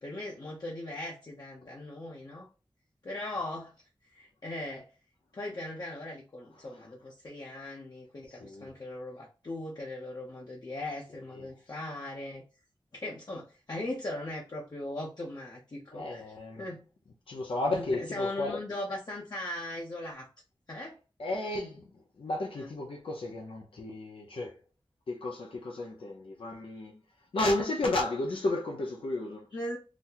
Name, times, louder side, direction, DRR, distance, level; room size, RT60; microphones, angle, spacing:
voice 1, 0.0-2.5 3.0-3.7 4.1-4.9 5.3-12.4 12.9-16.2 16.6-16.8 17.7-20.3 20.7-21.0 22.6-22.7 29.5-29.8, left 1 dB, 50° left, 0.8 m, -39 dB
voice 2, 8.3-8.7 11.3-11.5 15.9-16.7 17.3-18.5 21.2-24.6 25.1-26.9 27.3-29.5, left 2 dB, 85° left, 0.7 m, -33 dB
4.1 x 2.1 x 2.8 m
wide cardioid pair, 100°, 9 cm